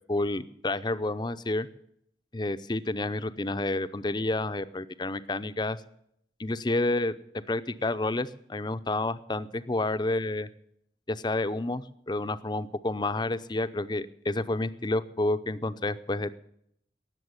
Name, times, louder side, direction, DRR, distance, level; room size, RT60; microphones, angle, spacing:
voice 1, 0.1-1.7 2.3-5.8 6.4-7.1 7.5-10.5 11.1-16.3, left 2 dB, 25° left, 12 dB, 0.6 m, -29 dB
18.5 x 7.2 x 9.7 m, 0.71 s
head